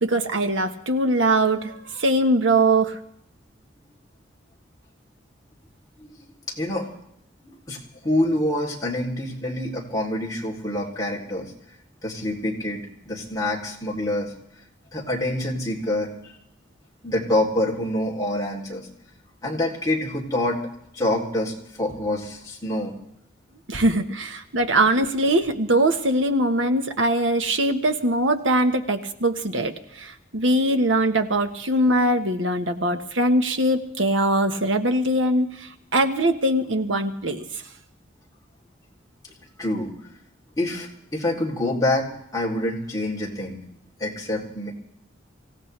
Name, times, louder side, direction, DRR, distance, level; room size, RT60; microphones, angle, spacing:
voice 1, 0.0-3.0 23.7-37.6, right 1 dB, 80° right, 7 dB, 1.4 m, -22 dB
voice 2, 6.6-6.9 7.4-11.5 12.0-14.3 14.9-16.3 17.0-18.9 19.4-20.6 20.9-22.9 39.6-39.9 40.6-43.6 44.0-44.7, left 1 dB, 20° left, -2 dB, 3.2 m, -26 dB
25.0 x 16.5 x 3.4 m, 0.73 s
head